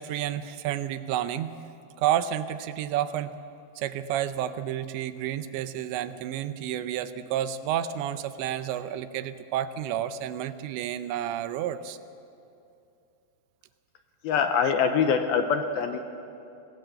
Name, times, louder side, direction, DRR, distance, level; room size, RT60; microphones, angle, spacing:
voice 1, 0.0-1.5 2.0-3.3 3.8-12.0, right 11 dB, 80° right, 11 dB, 3.1 m, -30 dB
voice 2, 14.2-16.0, left 6 dB, 70° left, 6 dB, 2.5 m, -24 dB
26.0 x 19.0 x 7.8 m, 2.7 s
omnidirectional pair, 5.2 m